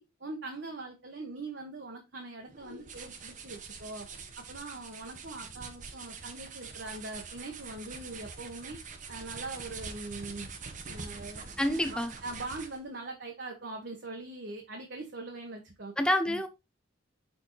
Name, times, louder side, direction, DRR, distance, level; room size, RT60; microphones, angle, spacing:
voice 1, 0.0-4.1 4.4-8.8 9.1-10.5 10.9-11.4 11.9-15.9 16.3-16.4, right 2 dB, 60° right, 1.2 m, -42 dB
sound 1, 2.5-12.9, right 5 dB, 40° right, 0.9 m, -44 dB
voice 2, 11.6-12.1 16.0-16.5, left 1 dB, 5° left, 0.6 m, -27 dB
6.3 x 4.6 x 3.9 m
head